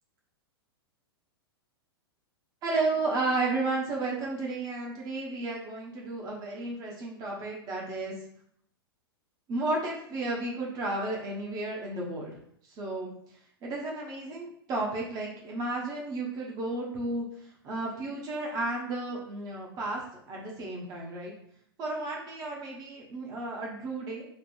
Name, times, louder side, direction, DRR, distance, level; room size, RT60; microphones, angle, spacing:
voice 1, 2.6-8.1 9.5-12.4 12.7-13.1 13.6-20.0 20.3-21.3 21.8-24.2, right 2 dB, 30° right, -2 dB, 1.0 m, -33 dB
3.3 x 2.5 x 4.3 m, 0.67 s
figure-of-eight pair, 100°, 13 cm